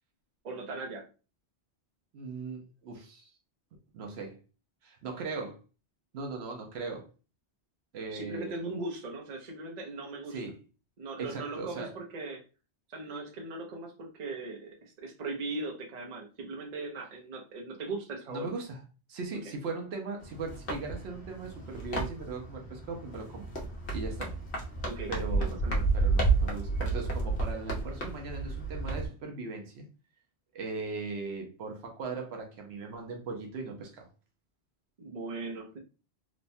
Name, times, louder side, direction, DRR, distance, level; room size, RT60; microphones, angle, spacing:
voice 1, 0.4-1.1 8.1-10.4 11.0-12.4 12.9-18.5 24.8-25.1 25.4-25.9 35.0-35.8, right 2 dB, 45° right, 0.7 m, -39 dB
voice 2, 2.1-3.3 3.9-4.4 4.8-5.6 6.1-7.1 7.9-8.6 10.3-10.6 11.2-12.0 18.3-18.8 19.1-23.5 23.9-24.3 25.1-25.6 25.9-29.9 30.5-34.1, right 4 dB, 75° right, 0.9 m, -39 dB
sound 1, 20.2-29.1, right 3 dB, 75° left, 1.0 m, -31 dB
3.1 x 2.1 x 2.6 m
omnidirectional pair, 1.1 m